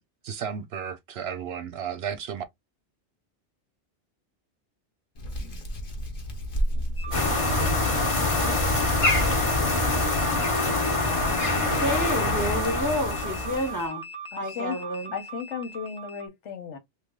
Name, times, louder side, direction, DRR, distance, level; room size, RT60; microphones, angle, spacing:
voice 1, 0.2-2.4, right 8 dB, 65° right, 0.8 m, -33 dB
Hands, 5.1-13.5, equal, 50° left, 1.1 m, -34 dB
sound 1, 7.0-16.3, right 3 dB, 10° left, 0.3 m, -39 dB
sound 2, 7.1-13.8, left 2 dB, 30° left, 0.9 m, -25 dB
voice 2, 11.6-14.0 14.4-15.1, equal, 15° right, 1.0 m, -29 dB
voice 3, 14.3-14.8 15.1-16.8, left 7 dB, 80° left, 1.1 m, -35 dB
3.2 x 2.3 x 3.6 m
omnidirectional pair, 1.2 m